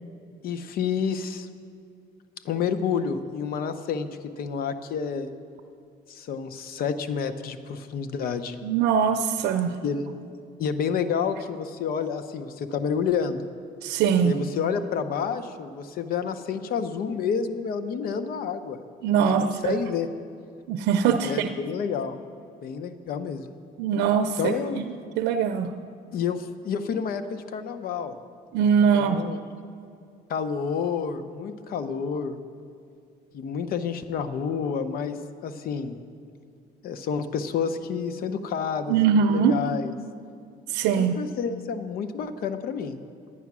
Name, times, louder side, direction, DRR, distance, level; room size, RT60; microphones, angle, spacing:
voice 1, 0.4-1.5 2.4-5.3 6.1-8.6 9.8-10.0 10.6-13.4 14.2-18.8 19.2-20.1 21.2-22.2 22.6-23.5 24.4-24.8 26.1-28.2 28.9-29.4 30.3-32.4 33.3-35.2 35.4-36.0 36.8-39.9 41.0-43.0, left 6 dB, 60° left, 10 dB, 0.7 m, -29 dB
voice 2, 8.6-9.7 13.8-14.3 19.0-19.8 20.7-21.5 23.8-24.5 25.2-25.7 28.5-29.2 38.9-39.5 40.7-41.2, right 7 dB, 85° right, 6 dB, 0.5 m, -22 dB
11.0 x 9.3 x 6.0 m, 2.4 s
cardioid pair, 110°, 17 cm